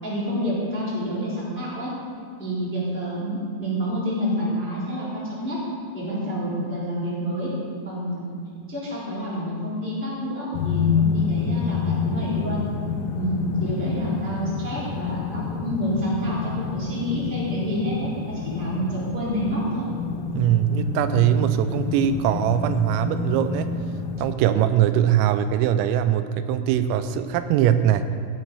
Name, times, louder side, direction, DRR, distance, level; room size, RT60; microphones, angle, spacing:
voice 1, 0.0-1.9 2.4-5.6 5.9-7.5 7.8-8.3 8.7-12.6 13.1-19.9, equal, 5° left, -8 dB, 2.1 m, -28 dB
sound 1, 10.5-24.4, left 5 dB, 85° left, 3.0 m, -28 dB
voice 2, 20.3-23.7 24.2-28.1, right 10 dB, 85° right, 10 dB, 3.2 m, -21 dB
15.5 x 8.8 x 4.8 m, 2.3 s
omnidirectional pair, 5.9 m